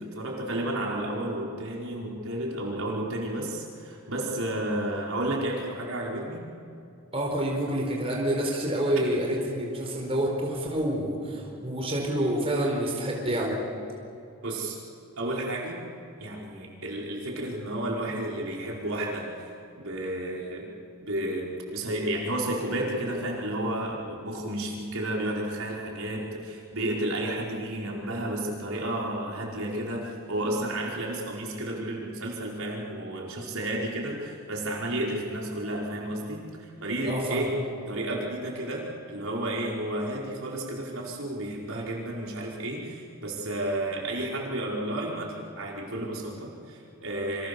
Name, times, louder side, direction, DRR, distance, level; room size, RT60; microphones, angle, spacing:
voice 1, 0.0-6.5 14.4-14.8 15.2-15.8 16.2-19.3 19.8-20.7 21.0-37.6 37.9-47.5, right 1 dB, 75° right, -2 dB, 4.8 m, -32 dB
voice 2, 7.1-13.6 37.0-37.5, right 1 dB, 25° right, -1 dB, 4.3 m, -28 dB
28.0 x 25.5 x 6.9 m, 2.7 s
head